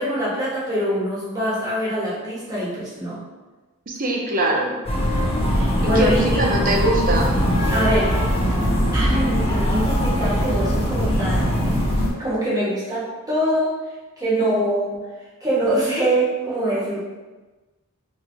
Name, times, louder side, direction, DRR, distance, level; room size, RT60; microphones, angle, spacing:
voice 1, 0.0-3.2 5.5-6.4 7.7-8.2 8.9-11.8 12.2-13.7 14.2-15.0 15.4-17.0, right 1 dB, 15° right, -8 dB, 1.2 m, -24 dB
voice 2, 3.9-4.8 5.8-7.3, right 1 dB, 40° right, 0 dB, 0.6 m, -22 dB
sound 1, 4.9-12.1, equal, 30° left, 0.7 m, -21 dB
4.4 x 3.0 x 2.6 m, 1.2 s
head